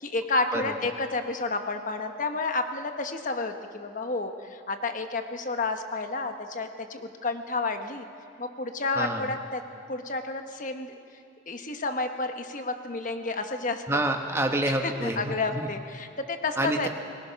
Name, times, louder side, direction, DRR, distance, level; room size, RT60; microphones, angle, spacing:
voice 1, 0.0-8.0 8.4-9.6 9.9-11.0 11.5-14.0 14.8-16.9, left 3 dB, 40° left, 6 dB, 1.2 m, -30 dB
voice 2, 8.9-9.3 13.9-15.7 16.6-16.9, right 1 dB, 15° right, 3 dB, 1.3 m, -28 dB
29.5 x 19.0 x 5.8 m, 2.4 s
head